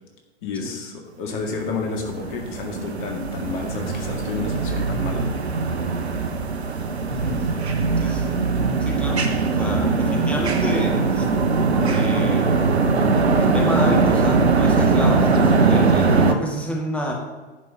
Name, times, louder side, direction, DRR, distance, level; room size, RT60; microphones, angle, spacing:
voice 1, 0.4-5.3, left 4 dB, 45° left, 2 dB, 2.1 m, -30 dB
sound 1, 1.8-16.3, right 4 dB, 75° right, 1.2 m, -20 dB
voice 2, 7.0-7.5 8.0-8.5 8.8-11.3 11.8-12.7 13.3-17.1, equal, 5° left, -2 dB, 2.2 m, -29 dB
10.5 x 5.5 x 8.0 m, 1.3 s
figure-of-eight pair, 95°, 33 cm